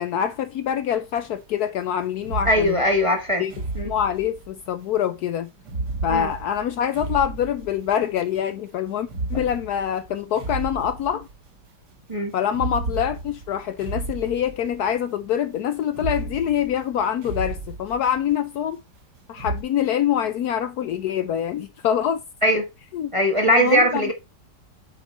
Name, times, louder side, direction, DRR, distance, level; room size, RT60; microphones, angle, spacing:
voice 1, 0.0-2.8 3.4-3.5 3.8-5.5 6.0-11.3 12.3-18.8 19.3-22.2 22.9-23.1 23.5-24.1, left 9 dB, 70° left, 1.0 m, -25 dB
sound 1, 1.2-1.3 2.2-4.8 5.6-8.1 9.0-11.5 12.5-14.9 15.9-18.4 19.3-19.6, right 2 dB, 65° right, 1.8 m, -33 dB
voice 2, 2.5-3.4 3.7-3.9 6.1-6.3 12.1-12.3 22.4-22.6 23.1-24.1, equal, 20° right, 0.9 m, -20 dB
8.1 x 4.3 x 4.1 m
omnidirectional pair, 2.0 m